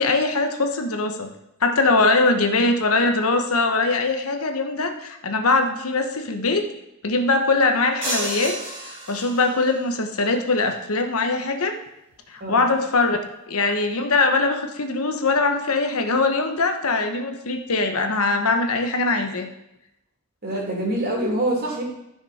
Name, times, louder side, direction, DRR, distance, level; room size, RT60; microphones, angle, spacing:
voice 1, 0.0-1.3 1.6-6.6 7.0-8.6 9.1-11.7 12.3-13.2 13.5-19.5, left 3 dB, 70° left, 5 dB, 1.1 m, -21 dB
sound 1, 8.0-9.8, right 1 dB, 25° right, 2.8 m, -31 dB
voice 2, 20.4-21.8, right 1 dB, 45° right, -2 dB, 2.8 m, -25 dB
13.5 x 6.0 x 4.3 m, 0.87 s
head